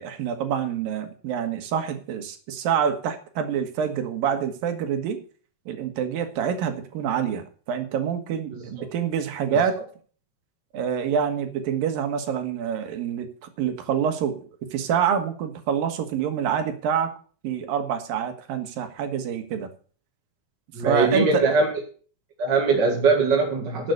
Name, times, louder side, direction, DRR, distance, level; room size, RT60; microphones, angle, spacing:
voice 1, 0.0-5.2 5.7-9.8 10.7-14.5 14.7-17.1 17.4-19.7 20.8-21.4, right 8 dB, 70° right, 8 dB, 3.1 m, -26 dB
voice 2, 20.7-21.7 22.4-23.9, right 3 dB, 35° right, 0 dB, 2.0 m, -21 dB
11.0 x 7.7 x 6.7 m, 0.42 s
omnidirectional pair, 4.4 m